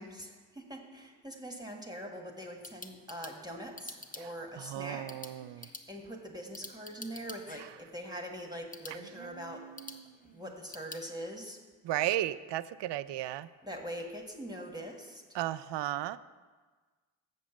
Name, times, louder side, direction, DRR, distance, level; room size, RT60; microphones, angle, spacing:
voice 1, 0.0-5.2 5.5-9.7 10.3-11.6 13.6-15.2, equal, 10° right, 1 dB, 1.4 m, -43 dB
sound 1, 2.3-11.1, left 2 dB, 20° left, 0.9 m, -50 dB
voice 2, 4.6-5.7 9.2-10.1 11.8-13.5 15.3-16.2, right 13 dB, 65° right, 15 dB, 0.5 m, -35 dB
7.3 x 5.3 x 7.1 m, 1.4 s
supercardioid pair, 45°, 45 cm